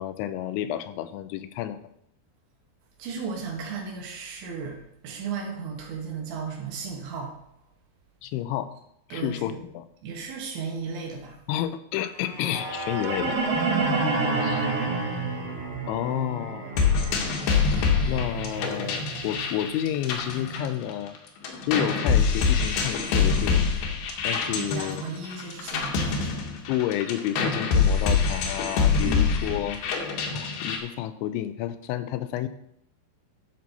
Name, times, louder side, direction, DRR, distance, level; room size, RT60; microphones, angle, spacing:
voice 1, 0.0-1.8 8.2-8.7 9.1-9.8 11.5-13.4 14.4-14.7 15.9-16.7 18.1-21.2 21.6-23.7 24.2-25.0 26.7-29.8 30.3-32.5, left 12 dB, 90° left, 11 dB, 3.0 m, -30 dB
voice 2, 3.0-4.8 5.0-7.3 9.1-9.4 10.0-11.4 13.7-14.2 24.6-26.5 29.0-29.3, right 5 dB, 80° right, 0 dB, 3.7 m, -34 dB
sound 1, 12.2-20.3, right 3 dB, 60° right, 3.0 m, -30 dB
sound 2, 16.8-21.2 21.4-30.8, left 5 dB, 70° left, 2.9 m, -25 dB
12.0 x 6.0 x 4.1 m, 0.75 s
omnidirectional pair, 5.2 m